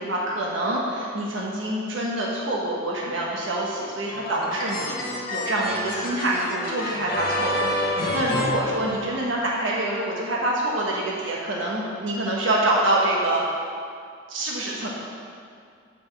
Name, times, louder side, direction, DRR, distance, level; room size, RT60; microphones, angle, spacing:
voice 1, 0.0-13.4 14.3-14.9, right 1 dB, 80° right, -4 dB, 1.2 m, -26 dB
sound 1, 4.1-9.5, left 1 dB, 50° left, 0.9 m, -28 dB
5.7 x 5.5 x 6.6 m, 2.2 s
head